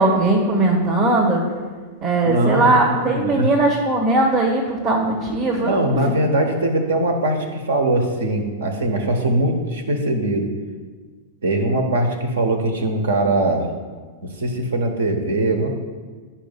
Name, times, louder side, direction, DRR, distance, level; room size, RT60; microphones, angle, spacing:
voice 1, 0.0-1.4 2.0-6.2, right 2 dB, 40° right, -4 dB, 1.4 m, -19 dB
voice 2, 2.2-3.5 5.6-10.5 11.4-13.7 14.2-15.7, right 1 dB, 70° right, 5 dB, 1.0 m, -21 dB
11.5 x 5.6 x 2.3 m, 1.5 s
figure-of-eight pair, 95°, 0 cm